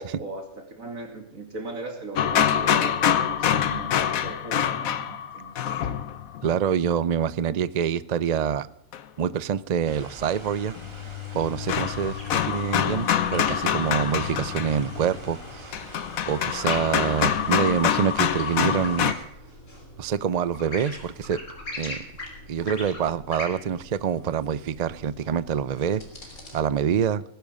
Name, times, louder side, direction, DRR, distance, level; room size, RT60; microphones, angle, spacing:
voice 1, 0.0-5.9 12.3-12.7, right 2 dB, 80° right, 4 dB, 3.2 m, -39 dB
sound 1, 2.2-6.5 8.9-9.0 10.8-19.1, left 9 dB, 80° left, 1.3 m, -25 dB
voice 2, 6.4-8.7 9.2-10.7 11.3-15.8 16.3-19.1 20.0-21.4 21.8-22.0 22.5-26.0 26.5-27.2, right 8 dB, 50° right, 17 dB, 0.4 m, -26 dB
sound 2, 9.8-19.2, right 1 dB, 20° right, 2.6 m, -44 dB
sound 3, 12.2-26.6, left 1 dB, 60° left, 3.7 m, -42 dB
19.5 x 10.5 x 5.3 m, 0.81 s
omnidirectional pair, 1.4 m